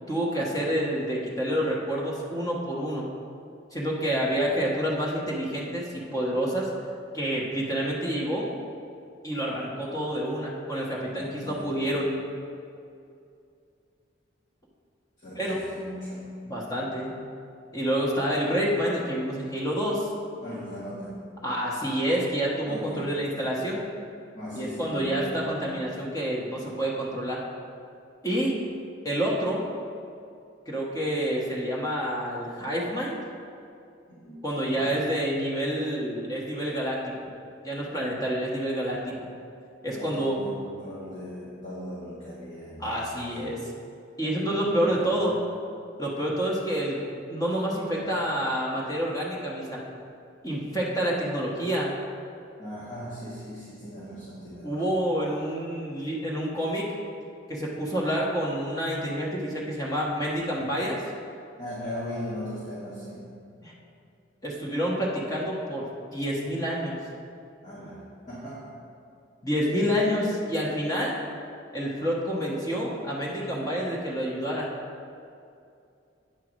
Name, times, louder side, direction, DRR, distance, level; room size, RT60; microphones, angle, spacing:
voice 1, 0.1-3.1 3.7-6.7 7.1-8.5 9.2-12.1 15.4-15.6 16.5-17.1 17.7-20.1 21.4-23.8 24.5-27.4 28.2-28.6 29.0-29.6 30.7-33.2 34.4-37.1 37.6-39.1 39.8-40.4 42.8-43.6 44.2-45.4 46.0-49.8 50.4-51.9 54.6-56.9 57.5-61.0 63.6-63.7 64.4-67.0 69.4-71.2 71.7-74.7, equal, 20° left, -4 dB, 1.1 m, -28 dB
voice 2, 11.2-11.8 15.2-16.4 20.4-21.3 22.7-23.2 24.3-25.5 34.1-35.0 40.0-43.6 44.2-44.4 44.6-45.4 52.6-55.0 61.6-63.3 67.6-68.8, equal, 40° left, -9 dB, 1.8 m, -39 dB
8.9 x 4.6 x 6.2 m, 2.5 s
head